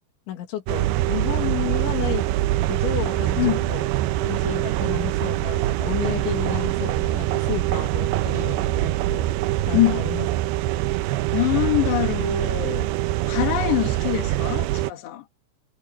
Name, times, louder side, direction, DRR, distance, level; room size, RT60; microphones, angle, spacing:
voice 1, 0.3-2.3 2.7-3.9 4.2-9.3 9.7-10.3, left 11 dB, 90° left, 4.8 m, -32 dB
sound 1, 0.7-14.9, right 15 dB, 85° right, 2.3 m, -24 dB
voice 2, 9.7-10.0 11.3-12.9 13.3-15.2, left 16 dB, 70° left, 4.0 m, -24 dB
omnidirectional pair, 5.2 m